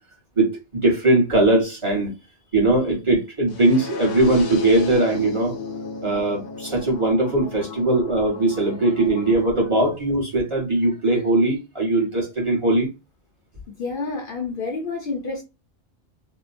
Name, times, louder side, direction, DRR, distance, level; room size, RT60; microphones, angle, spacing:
voice 1, 0.4-2.1 2.5-5.5 6.0-12.9, right 2 dB, 30° right, 1.1 m, -20 dB
sound 1, 3.5-9.5, left 5 dB, 75° left, 0.9 m, -34 dB
voice 2, 13.8-15.4, left 4 dB, 60° left, 0.7 m, -29 dB
2.8 x 2.1 x 2.5 m
omnidirectional pair, 1.2 m